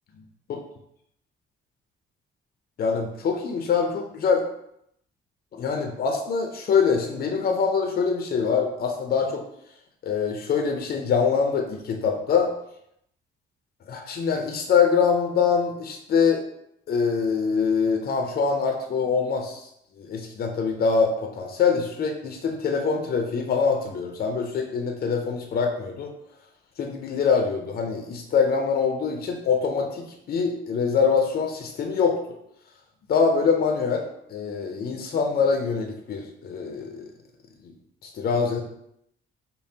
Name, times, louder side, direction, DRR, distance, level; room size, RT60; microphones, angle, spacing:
voice 1, 2.8-4.4 5.5-9.4 10.0-12.5 13.9-16.4 16.9-19.7 20.0-26.1 26.8-32.2 33.1-34.0 34.3-37.1 37.6-37.7 38.1-38.6, left 5 dB, 50° left, 3 dB, 0.5 m, -24 dB
5.2 x 2.1 x 2.7 m, 0.75 s
cardioid pair, 90°, 20 cm